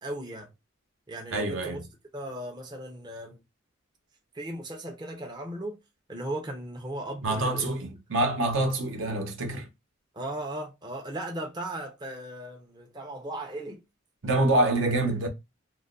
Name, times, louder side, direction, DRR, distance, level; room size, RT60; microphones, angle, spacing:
voice 1, 0.0-0.5 1.1-1.8 2.1-3.4 4.3-5.8 6.1-7.8 10.1-13.8, right 1 dB, 20° right, 0.6 m, -37 dB
voice 2, 1.3-1.9 7.2-9.7 14.2-15.3, right 2 dB, 65° right, 0.9 m, -26 dB
2.3 x 2.2 x 3.7 m
head